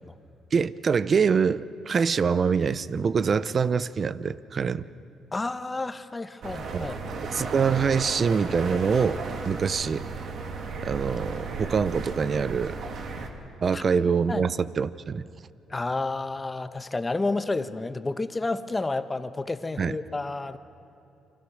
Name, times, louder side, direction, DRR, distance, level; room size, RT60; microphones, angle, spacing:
voice 1, 0.5-4.9 6.7-6.9 7.3-10.1 10.8-12.8 13.6-15.3 19.8-19.9, right 6 dB, 45° right, 16 dB, 0.7 m, -25 dB
voice 2, 5.3-6.9 13.7-13.8 14.3-14.4 15.7-20.6, left 3 dB, 20° left, 10 dB, 1.2 m, -30 dB
sound 1, 6.4-13.3, right 4 dB, 65° right, 2.6 m, -34 dB
29.5 x 25.0 x 6.4 m, 2.8 s
cardioid pair, 90°, 0 cm